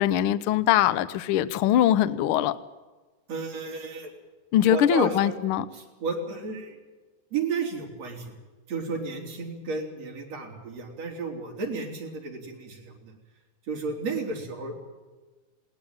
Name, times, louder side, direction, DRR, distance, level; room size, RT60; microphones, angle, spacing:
voice 1, 0.0-2.6 4.5-5.7, left 11 dB, 80° left, 14 dB, 1.2 m, -22 dB
voice 2, 3.3-4.1 4.7-5.3 5.7-6.8 7.3-8.3 8.7-13.1 13.7-14.7, right 4 dB, 55° right, 0 dB, 5.0 m, -32 dB
20.5 x 18.0 x 9.0 m, 1.3 s
omnidirectional pair, 3.6 m